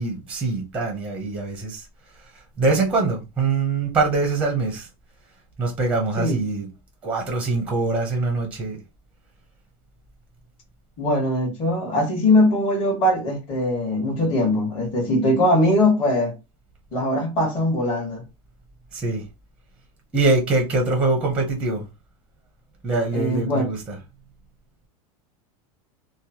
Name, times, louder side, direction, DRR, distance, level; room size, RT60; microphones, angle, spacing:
voice 1, 0.0-1.9 2.6-4.9 5.6-6.7 7.0-8.8 18.9-19.2 20.1-21.8 22.8-24.0, right 3 dB, 5° right, 0.6 m, -23 dB
voice 2, 11.0-16.3 16.9-18.2 23.1-23.6, left 1 dB, 35° left, 1.2 m, -21 dB
3.0 x 2.1 x 2.7 m
supercardioid pair, 165°, 18 cm